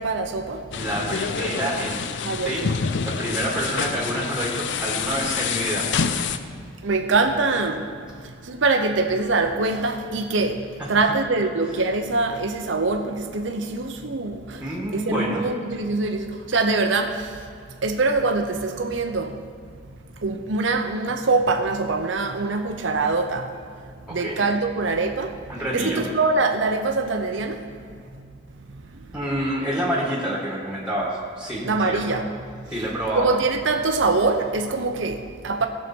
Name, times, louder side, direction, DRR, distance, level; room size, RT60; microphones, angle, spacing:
voice 1, 0.0-0.7 2.2-2.7 6.8-7.9 8.4-14.6 14.9-17.4 17.8-19.4 20.2-23.5 24.1-25.4 25.7-27.7 28.9-29.0 31.6-32.2 33.2-35.7, right 3 dB, 70° right, 4 dB, 0.7 m, -24 dB
sound 1, 0.7-6.4, left 6 dB, 65° left, 0.5 m, -27 dB
voice 2, 0.8-2.0 2.4-2.6 3.0-5.9 10.8-11.0 14.6-15.4 24.1-24.4 25.5-26.1 29.1-32.3 32.7-33.3, right 1 dB, 5° right, -3 dB, 1.9 m, -28 dB
16.5 x 6.7 x 4.5 m, 2.2 s
head